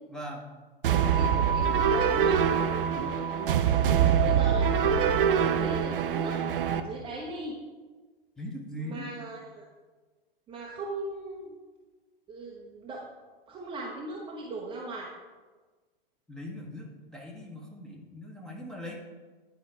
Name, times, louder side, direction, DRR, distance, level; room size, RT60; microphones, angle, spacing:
voice 1, 0.1-0.5 2.9-3.2 8.4-9.1 16.3-18.9, equal, ahead, -2 dB, 1.0 m, -40 dB
sound 1, 0.8-6.8, right 8 dB, 65° right, 0.5 m, -24 dB
voice 2, 1.0-2.4 3.8-6.4 6.7-7.6 8.8-9.7 10.5-11.5 12.3-13.0 13.5-15.1, right 2 dB, 15° right, -2 dB, 0.7 m, -38 dB
9.7 x 4.5 x 3.4 m, 1.3 s
figure-of-eight pair, 100°, 29 cm